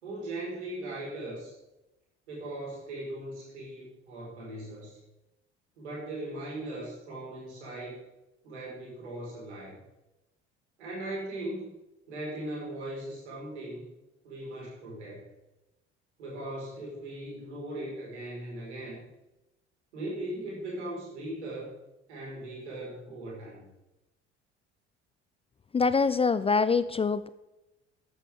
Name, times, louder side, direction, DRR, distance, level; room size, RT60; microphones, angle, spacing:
voice 1, 0.0-1.5 2.3-5.0 5.8-8.0 8.4-9.7 10.8-11.7 12.1-13.9 14.2-15.2 16.2-19.0 19.9-21.7 22.1-23.6, right 1 dB, 75° right, -4 dB, 5.2 m, -39 dB
voice 2, 25.7-27.3, left 4 dB, 15° left, 14 dB, 0.5 m, -24 dB
13.5 x 11.0 x 3.7 m, 0.96 s
figure-of-eight pair, 55°, 34 cm